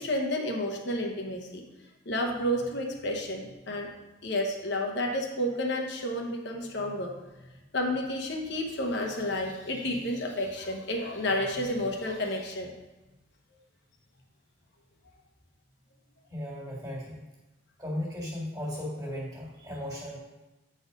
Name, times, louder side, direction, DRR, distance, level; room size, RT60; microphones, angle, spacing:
voice 1, 0.0-1.6 2.1-3.9 4.2-7.2 7.7-12.7, left 1 dB, 55° left, 2 dB, 1.0 m, -31 dB
voice 2, 16.3-17.2 17.8-20.2, left 1 dB, 15° right, -4 dB, 2.0 m, -36 dB
8.5 x 4.3 x 5.2 m, 1.1 s
head